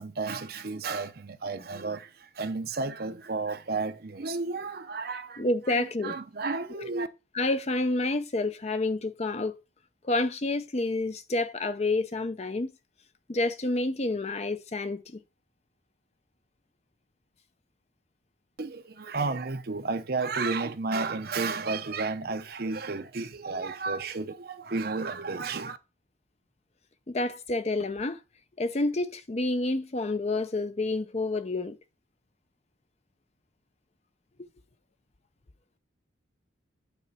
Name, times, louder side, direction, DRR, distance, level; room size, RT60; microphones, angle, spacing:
voice 1, 0.0-7.1 18.6-25.8, right 3 dB, 50° right, 0.7 m, -32 dB
voice 2, 5.4-6.2 7.3-9.6 10.0-12.7 13.3-15.2 27.1-28.2 28.6-31.8 34.4-34.5, left 2 dB, 35° left, 0.5 m, -29 dB
9.1 x 4.2 x 5.5 m
head